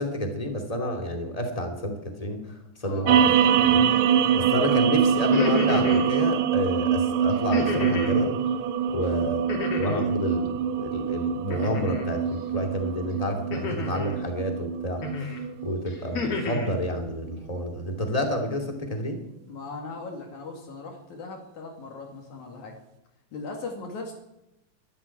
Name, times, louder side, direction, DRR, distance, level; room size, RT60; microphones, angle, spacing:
voice 1, 0.0-3.2 3.6-3.8 4.3-8.4 8.9-9.4 9.7-15.0 15.6-19.2, equal, 15° left, 3 dB, 2.3 m, -29 dB
sound 1, 3.1-17.6, right 8 dB, 85° right, 1.1 m, -24 dB
sound 2, 5.2-6.1 7.5-8.2 9.5-10.2 11.5-12.1 13.5-14.2 15.0-15.4 15.9-16.7, left 3 dB, 55° left, 3.6 m, -30 dB
voice 2, 8.9-9.3 19.5-22.7 23.3-24.1, left 3 dB, 85° left, 1 dB, 3.7 m, -39 dB
12.0 x 12.0 x 9.8 m, 0.88 s
omnidirectional pair, 3.3 m